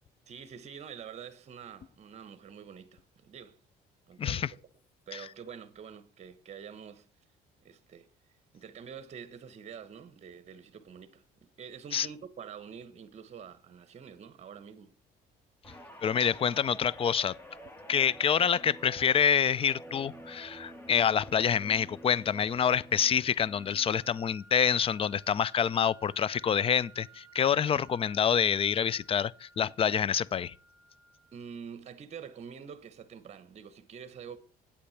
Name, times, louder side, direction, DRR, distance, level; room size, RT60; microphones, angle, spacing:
voice 1, 0.3-3.6 4.1-4.4 5.1-7.1 7.6-8.1 8.5-14.9 31.3-34.4, right 7 dB, 40° right, 1.1 m, -46 dB
voice 2, 4.2-4.5 5.1-5.3 11.9-12.1 16.0-17.4 17.9-30.5, left 8 dB, 35° left, 0.4 m, -27 dB
Guitar, 15.6-24.2 24.6-24.9, equal, 15° left, 1.7 m, -49 dB
sound 1, 23.4-31.5, right 4 dB, 5° right, 3.0 m, -57 dB
8.6 x 8.5 x 5.7 m
cardioid pair, 110°, 17 cm